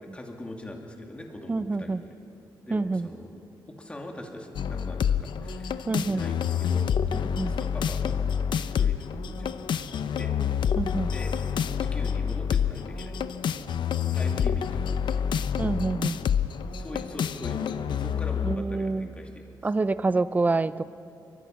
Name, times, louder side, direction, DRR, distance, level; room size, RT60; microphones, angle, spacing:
voice 1, 0.1-2.1 2.6-3.4 3.7-6.9 7.4-8.2 8.8-9.6 10.2-10.4 11.1-11.3 11.8-13.8 14.1-15.2 16.7-19.6, left 1 dB, 15° left, 1 dB, 2.6 m, -41 dB
voice 2, 1.5-2.0 2.7-3.1 5.9-6.2 7.3-7.6 10.8-11.1 15.6-16.2 18.4-19.1 19.6-20.8, right 3 dB, 20° right, 15 dB, 0.5 m, -27 dB
sound 1, 4.5-18.6, left 8 dB, 70° left, 0.7 m, -28 dB
26.0 x 23.5 x 5.9 m, 2.6 s
wide cardioid pair, 150°, 8 cm